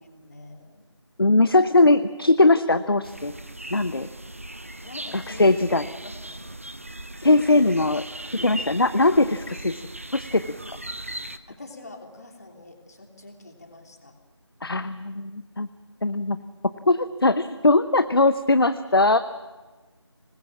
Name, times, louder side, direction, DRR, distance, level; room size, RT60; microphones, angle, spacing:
voice 1, 0.2-0.9 4.8-6.4 11.5-14.1, left 2 dB, 35° left, 2 dB, 3.2 m, -45 dB
voice 2, 1.2-3.3 3.7-4.1 5.1-5.9 7.2-8.1 8.3-9.8 10.1-10.4 14.6-15.7 16.0-16.4 16.9-19.2, left 2 dB, 50° left, 12 dB, 0.8 m, -20 dB
sound 1, 3.0-11.4, right 1 dB, 25° right, 0.8 m, -38 dB
25.0 x 20.0 x 7.4 m, 1.2 s
figure-of-eight pair, 170°, 15 cm